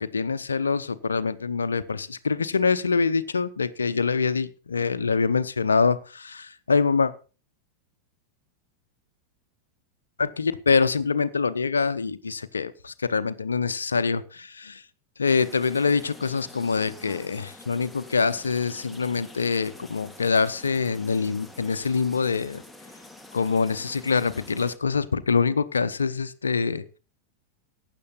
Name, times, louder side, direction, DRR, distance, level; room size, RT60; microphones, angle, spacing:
voice 1, 0.0-7.1 10.2-14.8 15.2-22.6 23.3-26.8, left 5 dB, 75° left, 12 dB, 0.8 m, -25 dB
sound 1, 15.3-24.8, left 2 dB, 5° left, 1.6 m, -47 dB
15.0 x 10.0 x 4.1 m, 0.34 s
figure-of-eight pair, 90°, 0 cm